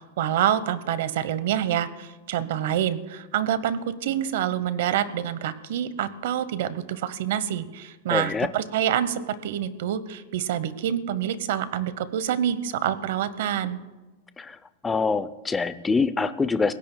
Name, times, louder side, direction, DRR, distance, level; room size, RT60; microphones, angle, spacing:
voice 1, 0.0-13.8, right 10 dB, 65° right, 15 dB, 0.9 m, -27 dB
voice 2, 8.1-8.5 14.4-14.6 14.8-16.7, left 4 dB, 10° left, 12 dB, 0.5 m, -25 dB
28.5 x 16.5 x 2.3 m, 1.2 s
supercardioid pair, 160°, 0 cm